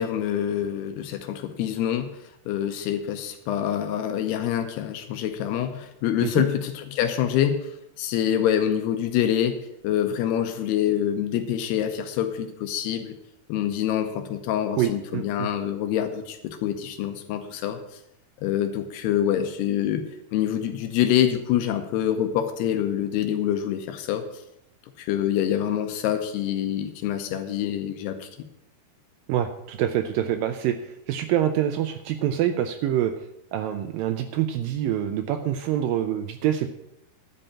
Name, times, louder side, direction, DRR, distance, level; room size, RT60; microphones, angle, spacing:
voice 1, 0.0-2.1 2.5-13.1 13.5-17.8 18.4-20.1 20.3-24.2 25.0-28.3, left 10 dB, 85° left, 7 dB, 2.9 m, -26 dB
voice 2, 14.8-15.5 29.3-33.1 33.5-36.7, right 11 dB, 85° right, 7 dB, 2.0 m, -26 dB
11.0 x 5.4 x 8.6 m, 0.83 s
omnidirectional pair, 4.7 m